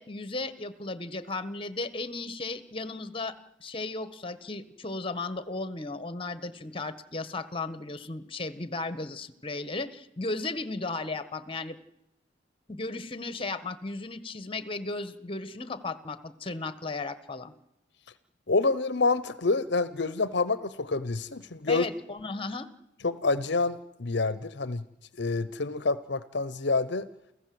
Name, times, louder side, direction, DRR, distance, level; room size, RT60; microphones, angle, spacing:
voice 1, 0.0-11.8 12.7-17.5 21.7-22.7, left 3 dB, 30° left, 15 dB, 1.5 m, -35 dB
voice 2, 18.5-21.8 23.0-24.8 25.2-27.1, left 3 dB, 65° left, 16 dB, 0.9 m, -27 dB
29.0 x 15.5 x 7.9 m, 0.89 s
head